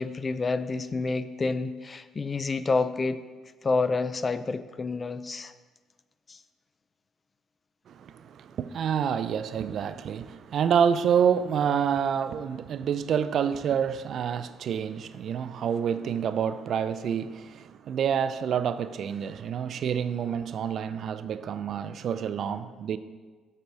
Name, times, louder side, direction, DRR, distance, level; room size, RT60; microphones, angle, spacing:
voice 1, 0.0-3.2 3.6-5.5 6.3-6.4, left 3 dB, 30° left, 13 dB, 0.4 m, -28 dB
voice 2, 7.9-23.0, right 8 dB, 60° right, 13 dB, 0.4 m, -28 dB
6.9 x 6.6 x 4.7 m, 1.4 s
cardioid pair, 90°, 0 cm